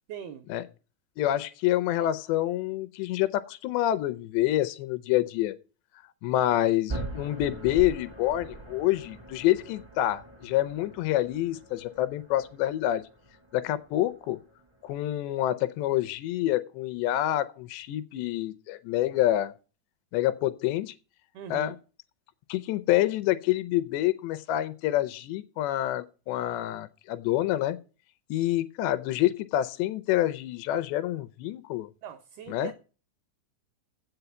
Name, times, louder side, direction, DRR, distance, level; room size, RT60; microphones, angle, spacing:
voice 1, 0.1-0.5 21.3-21.7 32.0-32.7, right 8 dB, 85° right, 2.2 m, -40 dB
voice 2, 1.2-5.5 6.2-13.0 13.5-14.4 14.8-19.5 20.1-21.0 21.5-21.8 22.5-27.8 28.3-31.9 32.5-32.7, left 14 dB, 80° left, 2.7 m, -27 dB
sound 1, 6.9-14.9, right 2 dB, 40° right, 0.4 m, -42 dB
7.8 x 6.9 x 7.9 m
omnidirectional pair, 5.2 m